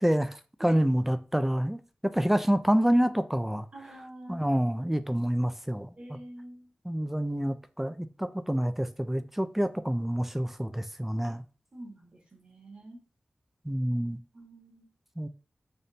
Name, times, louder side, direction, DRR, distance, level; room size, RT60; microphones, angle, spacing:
voice 1, 0.0-3.7 4.3-6.2 6.8-11.4 13.6-14.2 15.2-15.3, equal, 10° right, 0.3 m, -27 dB
voice 2, 3.7-4.4 6.0-6.7 11.2-11.3 11.7-13.0 14.3-14.9, right 1 dB, 45° right, 1.5 m, -46 dB
3.4 x 2.6 x 4.1 m
wide cardioid pair, 70°, 3 cm